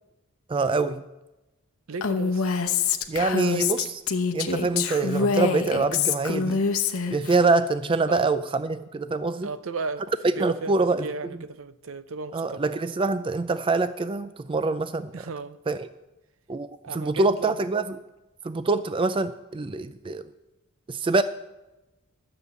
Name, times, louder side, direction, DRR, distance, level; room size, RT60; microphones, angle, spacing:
voice 1, 0.5-1.0 3.1-4.0 4.3-6.6 7.1-9.5 10.4-11.1 12.3-15.1 15.7-15.9 16.5-17.8 18.4-20.2 20.9-21.2, right 3 dB, 25° right, 0.3 m, -25 dB
voice 2, 1.9-2.5 8.1-8.4 9.4-12.6 15.1-15.6 16.8-17.6, right 4 dB, 65° right, 0.6 m, -35 dB
Female speech woman speaking, 2.0-7.4, left 5 dB, 85° left, 0.9 m, -25 dB
13.0 x 7.0 x 8.1 m
head